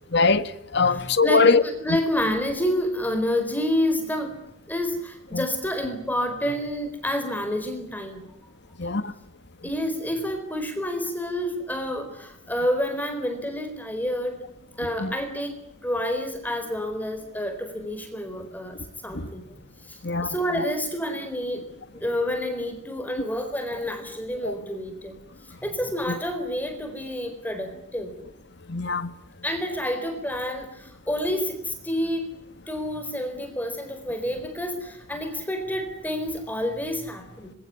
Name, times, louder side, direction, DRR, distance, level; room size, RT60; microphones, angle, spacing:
voice 1, 0.1-1.6 5.3-5.4 8.8-9.1 15.0-15.1 20.0-20.3 24.4-24.5 28.7-29.1, left 4 dB, 55° left, 1.7 m, -21 dB
voice 2, 0.8-4.4 4.7-8.3 9.6-14.4 14.8-15.6 15.8-19.5 19.9-21.6 21.9-25.2 25.4-28.2 29.4-32.3 32.7-37.5, left 1 dB, 10° left, 4.2 m, -29 dB
26.0 x 22.5 x 9.7 m
head